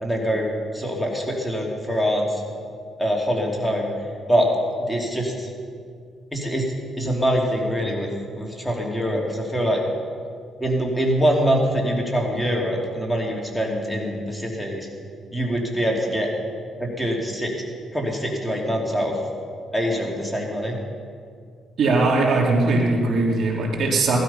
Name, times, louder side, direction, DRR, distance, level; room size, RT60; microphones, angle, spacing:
voice 1, 0.0-0.5 0.7-2.4 3.0-3.9 4.3-4.5 4.8-5.5 6.3-8.1 8.4-9.8 10.6-14.9 15.3-16.3 16.8-17.5 17.9-19.2 19.7-20.8, equal, 5° left, -1 dB, 3.0 m, -24 dB
voice 2, 21.8-24.2, right 3 dB, 60° right, -1 dB, 3.2 m, -20 dB
18.5 x 13.0 x 5.7 m, 2.2 s
cardioid pair, 90°, 0 cm